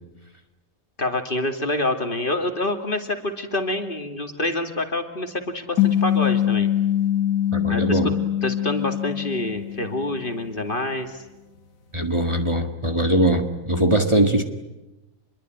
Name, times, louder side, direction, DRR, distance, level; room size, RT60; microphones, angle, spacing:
voice 1, 1.0-6.7 7.7-8.0 8.4-11.2, left 2 dB, 40° left, 5 dB, 2.7 m, -27 dB
sound 1, 5.8-10.4, left 11 dB, 80° left, 1.9 m, -23 dB
voice 2, 7.5-8.1 11.9-14.4, right 1 dB, 20° right, 5 dB, 1.9 m, -21 dB
27.0 x 22.5 x 9.5 m, 1.0 s
omnidirectional pair, 1.4 m